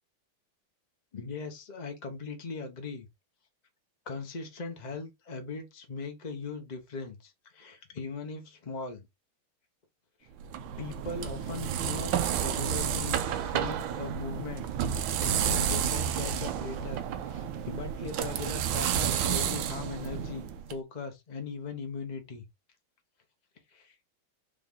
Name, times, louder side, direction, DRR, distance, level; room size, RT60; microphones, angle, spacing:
voice 1, 1.1-3.1 4.1-9.1 10.2-10.3 10.8-22.4 23.7-24.0, left 4 dB, 35° left, 0.7 m, -39 dB
sound 1, 10.4-20.7, right 9 dB, 75° right, 1.3 m, -31 dB
5.2 x 2.6 x 3.7 m
omnidirectional pair, 2.3 m